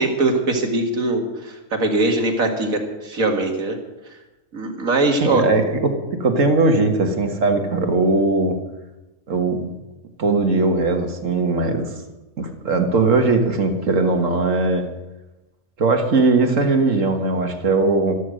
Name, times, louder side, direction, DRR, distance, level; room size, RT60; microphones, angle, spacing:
voice 1, 0.0-3.8 4.5-5.4, right 2 dB, 85° right, 3 dB, 2.5 m, -21 dB
voice 2, 5.2-8.6 9.3-9.7 10.2-11.9 12.4-14.8 15.8-18.1, right 3 dB, 70° right, 5 dB, 1.9 m, -19 dB
13.0 x 13.0 x 6.4 m, 1.0 s
omnidirectional pair, 1.4 m